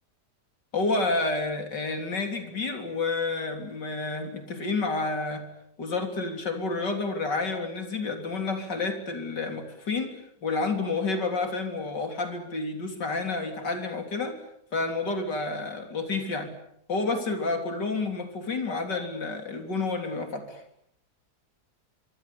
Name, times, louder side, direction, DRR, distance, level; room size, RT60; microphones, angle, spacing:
voice 1, 0.7-5.4 5.8-10.1 10.4-14.4 14.7-16.5 16.9-20.6, left 3 dB, 85° left, 6 dB, 4.1 m, -29 dB
26.5 x 24.5 x 8.6 m, 0.72 s
omnidirectional pair, 1.8 m